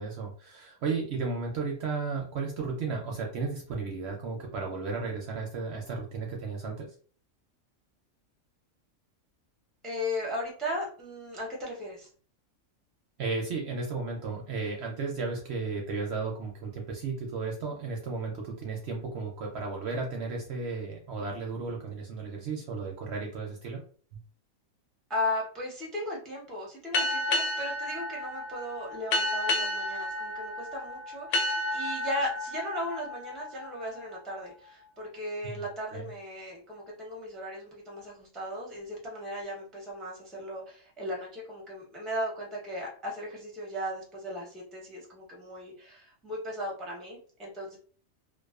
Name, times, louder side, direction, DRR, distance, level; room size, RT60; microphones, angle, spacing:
voice 1, 0.0-6.9 13.2-23.8 35.4-35.5 35.9-36.1, right 4 dB, 65° right, 1 dB, 0.7 m, -34 dB
voice 2, 9.8-12.1 25.1-47.8, left 1 dB, ahead, -3 dB, 0.5 m, -36 dB
sound 1, 26.9-34.2, left 1 dB, 70° left, 0.9 m, -31 dB
2.4 x 2.3 x 2.3 m, 0.43 s
omnidirectional pair, 1.4 m